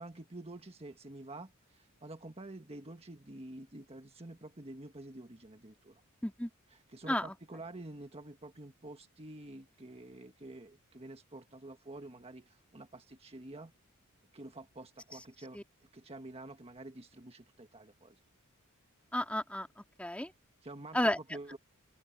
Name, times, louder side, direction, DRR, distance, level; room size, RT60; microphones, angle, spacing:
voice 1, 0.0-6.0 6.7-13.7 14.3-15.6 15.9-18.1 20.6-21.6, right 2 dB, 25° right, 1.6 m, -48 dB
voice 2, 19.1-20.3 20.9-21.2, left 1 dB, 5° left, 2.1 m, -32 dB
open air
head